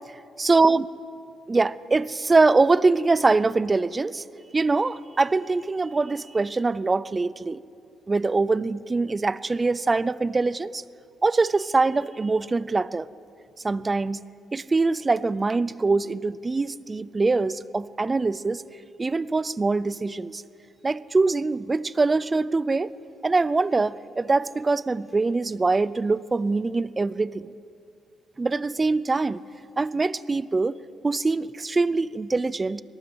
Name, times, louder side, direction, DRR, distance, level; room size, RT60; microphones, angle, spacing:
voice 1, 0.4-0.8 1.5-4.2 4.5-7.6 8.1-10.8 11.2-13.1 13.6-14.2 14.5-18.6 19.0-20.4 20.8-22.9 23.2-27.5 28.4-29.4 29.8-30.8 31.0-32.8, right 3 dB, 25° right, 17 dB, 0.6 m, -23 dB
22.0 x 18.5 x 8.0 m, 2.4 s
cardioid pair, 90°, 0 cm